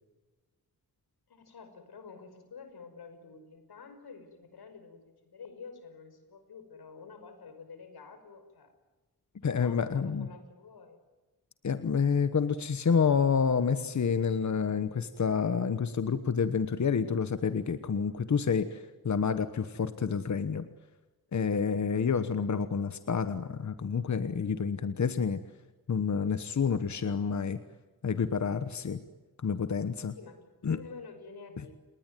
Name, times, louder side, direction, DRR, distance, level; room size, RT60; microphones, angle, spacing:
voice 1, 1.3-8.7 9.6-11.1 30.1-31.7, left 5 dB, 90° left, 9 dB, 5.7 m, -49 dB
voice 2, 9.4-10.3 11.6-20.6 21.3-25.4 25.9-27.6 28.0-29.0 29.4-30.1 30.6-30.8, left 6 dB, 50° left, 11 dB, 1.2 m, -28 dB
30.0 x 20.0 x 9.3 m, 1.2 s
wide cardioid pair, 130°, 37 cm